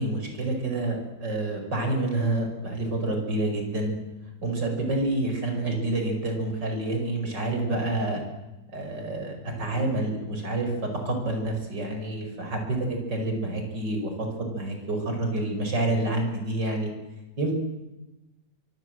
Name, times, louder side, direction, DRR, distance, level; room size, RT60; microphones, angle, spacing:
voice 1, 0.0-4.0 4.4-8.2 8.7-16.9 17.4-17.5, right 2 dB, 85° right, 4 dB, 6.1 m, -28 dB
25.5 x 23.5 x 7.9 m, 1.1 s
omnidirectional pair, 1.9 m